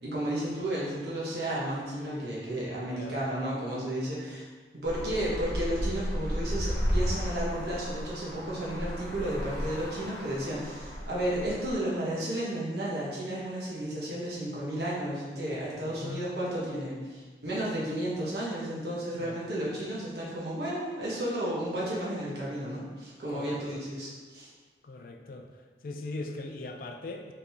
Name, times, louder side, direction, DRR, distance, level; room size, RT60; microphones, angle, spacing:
voice 1, 0.0-4.4 4.7-24.5, right 1 dB, 65° right, -7 dB, 1.2 m, -33 dB
voice 2, 2.9-3.2 15.8-16.3 19.2-19.4 23.3-23.8 24.8-25.5 25.8-27.3, left 2 dB, 50° left, 4 dB, 0.3 m, -40 dB
Traffic noise roadway noise, 4.8-11.8, equal, 15° left, 0.9 m, -33 dB
3.7 x 3.5 x 2.9 m, 1.4 s
head